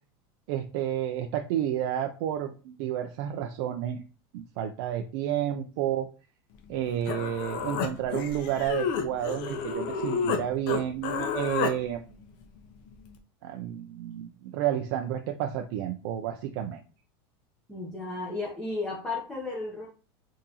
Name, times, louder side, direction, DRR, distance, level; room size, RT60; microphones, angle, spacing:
voice 1, 0.5-4.0 4.3-6.1 6.7-12.1 13.4-16.8, right 11 dB, 65° right, 5 dB, 0.4 m, -30 dB
Human voice, 6.7-6.8 7.1-10.4 10.7-11.7, left 6 dB, 60° left, 0.6 m, -30 dB
voice 2, 17.7-19.9, left 3 dB, 5° left, -3 dB, 0.6 m, -34 dB
3.7 x 2.6 x 2.8 m, 0.36 s
supercardioid pair, 145°, 13 cm